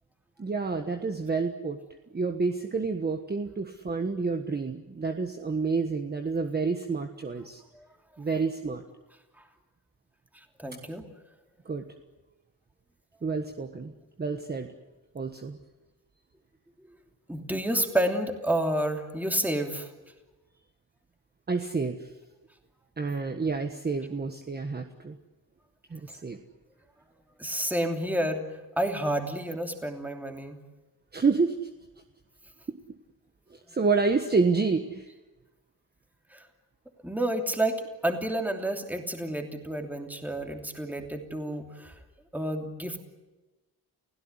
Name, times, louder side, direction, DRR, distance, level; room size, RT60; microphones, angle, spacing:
voice 1, 0.4-1.8 2.1-7.6 8.2-8.8 11.6-11.8 13.2-13.9 14.2-14.7 15.1-15.6 21.5-22.1 23.0-25.2 25.9-26.4 31.1-31.7 32.7-32.8 33.5-35.1, right 4 dB, 25° right, 5 dB, 1.4 m, -29 dB
voice 2, 10.6-11.0 17.3-19.9 27.4-28.4 28.8-30.6 36.3-36.4 37.0-41.9 42.3-43.0, right 1 dB, 5° right, 4 dB, 3.0 m, -30 dB
30.0 x 16.5 x 9.8 m, 1.1 s
wide cardioid pair, 145°, 37 cm